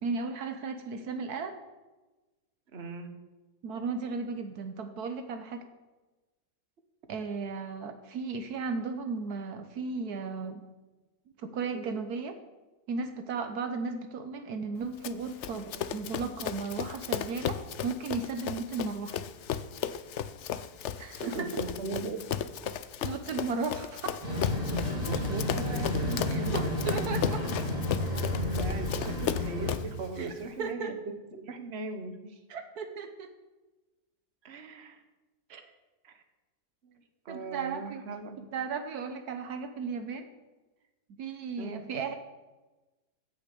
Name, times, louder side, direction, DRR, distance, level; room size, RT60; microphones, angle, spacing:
voice 1, 0.0-1.6 3.6-5.7 7.1-10.6 11.4-12.4 12.9-19.2 21.0-21.5 23.0-24.2 26.3-27.4 30.2-30.3 30.6-30.9 32.5-33.3 35.5-35.7 37.3-38.0 38.5-40.3 41.2-42.1, right 4 dB, 75° right, 7 dB, 1.4 m, -35 dB
voice 2, 2.7-3.1 21.2-22.2 25.0-26.7 28.5-30.9 31.3-32.4 34.4-35.0 36.0-36.2 36.8-38.5 41.5-41.8, right 3 dB, 45° right, 6 dB, 1.5 m, -39 dB
Run, 15.0-30.0, left 9 dB, 60° left, 0.8 m, -35 dB
sound 1, 24.2-29.7, left 1 dB, 25° right, 3.3 m, -31 dB
14.5 x 6.5 x 8.3 m, 1.2 s
omnidirectional pair, 1.7 m